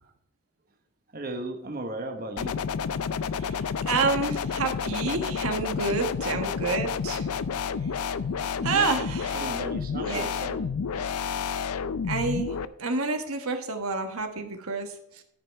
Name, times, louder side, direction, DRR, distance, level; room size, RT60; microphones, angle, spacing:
voice 1, 1.1-2.6 8.6-11.2, right 1 dB, 40° right, 4 dB, 1.1 m, -36 dB
sound 1, 2.4-12.7, left 6 dB, 85° left, 0.5 m, -30 dB
voice 2, 3.4-7.3 8.6-9.4 9.9-10.3 12.1-12.5 12.8-15.2, right 4 dB, 80° right, 5 dB, 1.3 m, -29 dB
13.5 x 5.6 x 4.5 m, 0.73 s
head